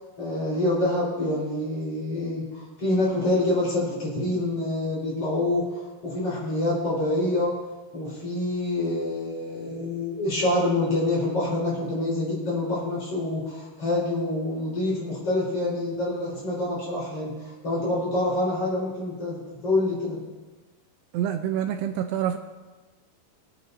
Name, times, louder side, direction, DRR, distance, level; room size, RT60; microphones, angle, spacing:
voice 1, 0.2-7.5 7.9-20.2, left 2 dB, 35° left, -6 dB, 5.0 m, -26 dB
voice 2, 21.1-22.4, right 10 dB, 80° right, 6 dB, 2.6 m, -27 dB
23.5 x 9.7 x 2.7 m, 1.3 s
omnidirectional pair, 5.0 m